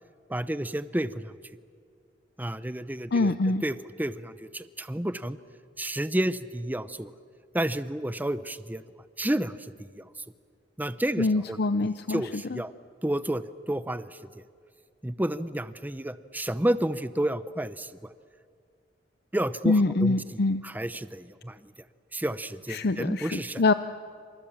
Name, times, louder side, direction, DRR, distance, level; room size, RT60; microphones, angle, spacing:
voice 1, 0.3-1.3 2.4-3.3 3.6-5.4 5.8-7.1 7.5-8.8 9.2-9.5 10.0-10.1 10.8-12.7 13.0-14.1 15.0-17.9 19.3-19.7 20.0-20.2 20.6-21.6 22.1-23.6, right 1 dB, 10° right, 13 dB, 0.7 m, -30 dB
voice 2, 3.1-3.6 11.2-12.6 19.6-20.6 22.7-23.7, left 3 dB, 60° left, 11 dB, 0.6 m, -25 dB
28.0 x 27.0 x 7.2 m, 2.2 s
head